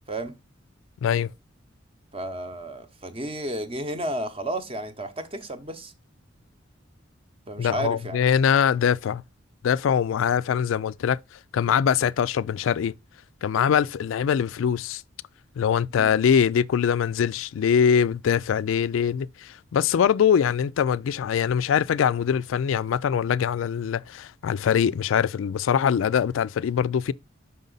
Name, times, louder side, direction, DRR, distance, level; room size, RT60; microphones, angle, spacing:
voice 1, 2.1-5.9 7.5-8.2 15.9-16.1, right 1 dB, 30° right, 0.7 m, -32 dB
voice 2, 7.6-9.2 9.6-11.2 11.5-12.9 13.4-15.0 15.6-27.1, left 8 dB, 85° left, 0.3 m, -23 dB
5.6 x 5.3 x 3.9 m
head